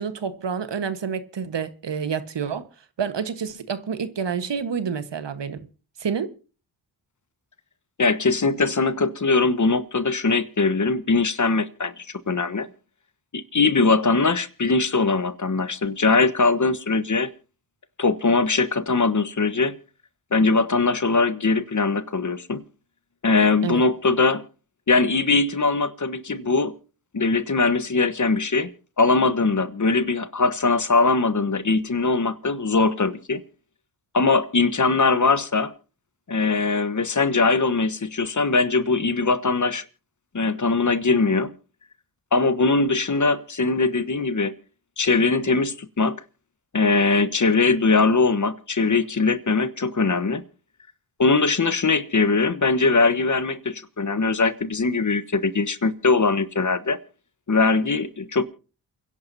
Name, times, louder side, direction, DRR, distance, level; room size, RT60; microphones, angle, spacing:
voice 1, 0.0-2.7 3.0-5.6 6.0-6.3 23.6-23.8, right 6 dB, 65° right, 1.6 m, -28 dB
voice 2, 8.0-12.7 13.3-17.3 18.0-19.8 20.3-22.6 23.2-24.4 24.9-26.7 27.1-28.7 29.0-33.4 34.1-35.7 36.3-39.8 40.3-41.5 42.3-44.5 45.0-46.2 46.7-50.4 51.2-57.0 57.5-58.4, left 3 dB, 40° left, 1.3 m, -21 dB
28.5 x 11.0 x 2.8 m
cardioid pair, 50°, 46 cm